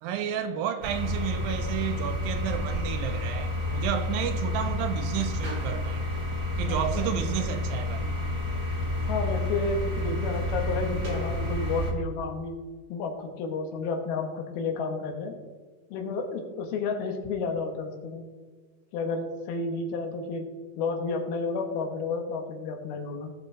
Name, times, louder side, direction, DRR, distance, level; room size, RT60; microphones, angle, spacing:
voice 1, 0.0-6.0 6.6-8.1, right 9 dB, 80° right, 2.2 m, -31 dB
sound 1, 0.8-11.9, left 1 dB, 45° right, 1.2 m, -30 dB
voice 2, 6.7-7.1 9.0-12.6 12.9-15.4 15.9-18.3 18.9-20.5 20.8-23.3, left 4 dB, 80° left, 3.1 m, -31 dB
17.5 x 5.9 x 3.8 m
omnidirectional pair, 4.3 m